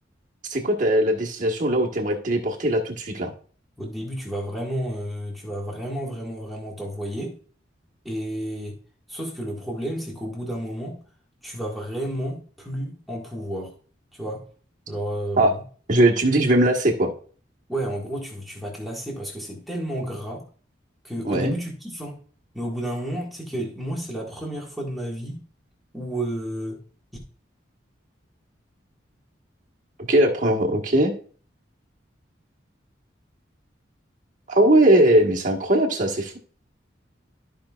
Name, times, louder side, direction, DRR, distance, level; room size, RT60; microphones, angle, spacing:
voice 1, 0.5-3.3 15.4-15.5 15.9-17.1 21.2-21.5 30.1-31.1 34.5-36.4, right 1 dB, 40° right, 0 dB, 1.5 m, -20 dB
voice 2, 3.8-7.4 8.0-8.8 9.1-11.0 11.4-13.7 14.1-14.4 14.9-15.6 17.7-20.4 21.0-22.2 22.5-25.4 25.9-26.8, right 1 dB, ahead, -3 dB, 1.8 m, -31 dB
13.5 x 5.5 x 2.4 m, 0.43 s
head